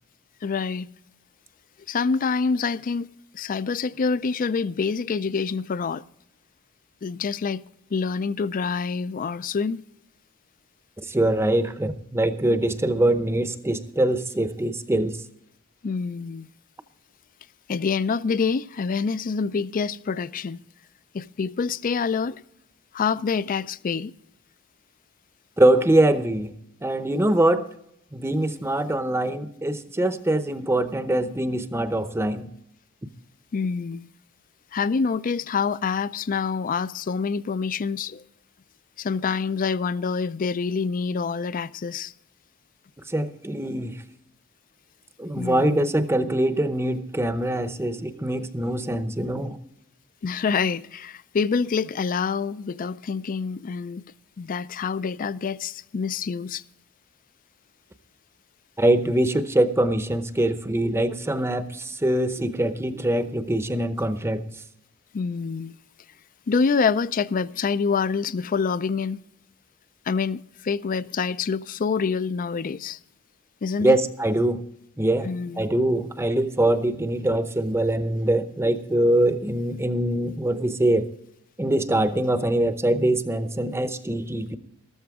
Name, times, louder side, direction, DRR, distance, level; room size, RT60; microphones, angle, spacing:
voice 1, 0.4-0.9 1.9-3.1 3.3-6.0 7.0-7.6 7.9-9.8 15.8-16.5 17.7-20.6 21.1-22.4 22.9-24.1 33.5-34.1 34.7-38.2 39.0-42.1 45.3-45.9 50.2-54.0 54.4-56.6 65.1-65.8 66.5-69.2 70.1-73.0 73.6-74.0 75.2-75.7, left 5 dB, 40° left, 0.4 m, -26 dB
voice 2, 11.0-15.2 25.6-26.5 26.8-27.7 28.1-32.5 43.1-44.0 45.2-49.6 58.8-64.6 73.8-74.6 75.0-75.3 75.6-81.1 81.6-84.6, right 1 dB, 10° right, 0.7 m, -23 dB
13.5 x 13.5 x 3.6 m
head